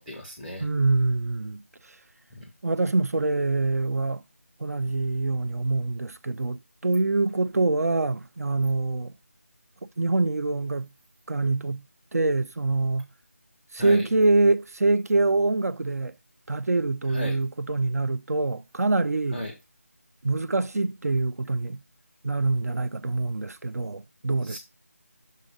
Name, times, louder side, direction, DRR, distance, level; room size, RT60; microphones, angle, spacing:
voice 1, 0.0-0.7 2.3-2.5 13.8-14.1 17.1-17.4 19.3-19.5 24.4-24.6, left 1 dB, ahead, 0.4 m, -36 dB
voice 2, 0.6-1.6 2.6-4.2 4.6-9.1 10.0-10.9 11.3-11.8 12.1-13.1 13.7-16.1 16.5-19.4 20.2-21.8 22.2-24.6, right 3 dB, 80° right, 0.4 m, -25 dB
6.4 x 3.7 x 5.1 m
figure-of-eight pair, 170°, 8 cm